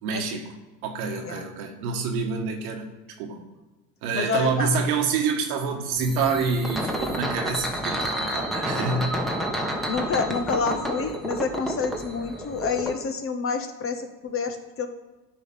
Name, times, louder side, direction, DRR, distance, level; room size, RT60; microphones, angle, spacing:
voice 1, 0.0-0.5 0.8-2.9 3.2-3.4 4.0-9.4, right 5 dB, 80° right, 3 dB, 1.7 m, -27 dB
voice 2, 4.1-4.7 9.9-14.9, left 5 dB, 30° left, 7 dB, 1.0 m, -28 dB
sound 1, 5.9-12.9, equal, ahead, 1.2 m, -30 dB
10.5 x 3.9 x 5.5 m, 1.1 s
supercardioid pair, 100°, 43 cm